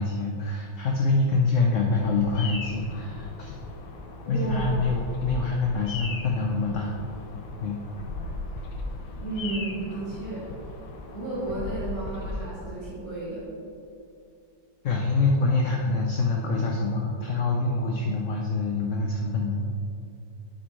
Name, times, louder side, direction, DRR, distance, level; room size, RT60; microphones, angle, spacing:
voice 1, 0.0-3.5 4.3-6.9 7.6-7.8 14.8-19.7, left 3 dB, 65° left, 0 dB, 0.7 m, -25 dB
Bird vocalization bird call bird song, 1.9-12.4, left 2 dB, 80° left, 1.6 m, -37 dB
voice 2, 4.2-4.9 9.2-10.5 11.1-13.5, right 2 dB, 20° left, -12 dB, 2.0 m, -33 dB
8.5 x 7.4 x 3.1 m, 2.5 s
omnidirectional pair, 2.0 m